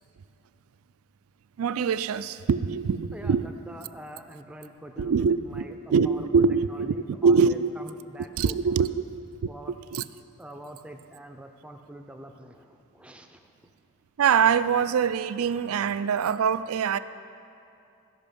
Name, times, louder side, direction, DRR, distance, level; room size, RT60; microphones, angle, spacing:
voice 1, 1.6-3.5 5.0-5.6 5.9-6.9 7.2-7.7 8.4-9.2 9.9-10.0 14.2-17.0, right 6 dB, 80° right, 0.4 m, -23 dB
voice 2, 3.1-8.9 9.5-9.7 10.4-13.7, right 1 dB, 5° right, 0.4 m, -45 dB
15.0 x 5.9 x 5.3 m
head